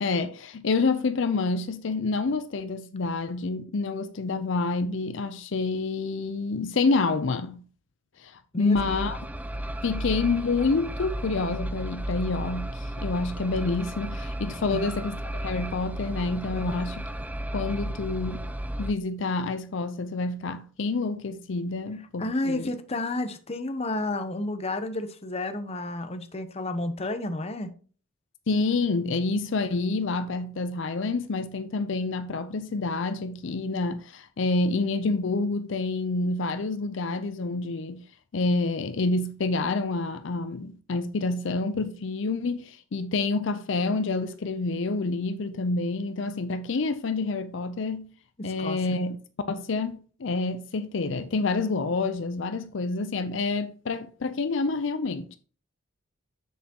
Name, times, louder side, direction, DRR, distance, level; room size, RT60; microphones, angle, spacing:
voice 1, 0.0-7.6 8.2-9.2 9.8-16.9 17.5-18.5 18.8-22.7 28.5-38.0 38.3-48.1 48.4-49.2 49.5-55.4, left 3 dB, 60° left, 0.5 m, -28 dB
sound 1, 8.7-18.9, right 1 dB, 5° right, 0.3 m, -34 dB
voice 2, 16.5-16.8 22.2-27.7 48.4-48.8, left 2 dB, 30° left, 0.7 m, -31 dB
7.5 x 6.9 x 2.9 m
head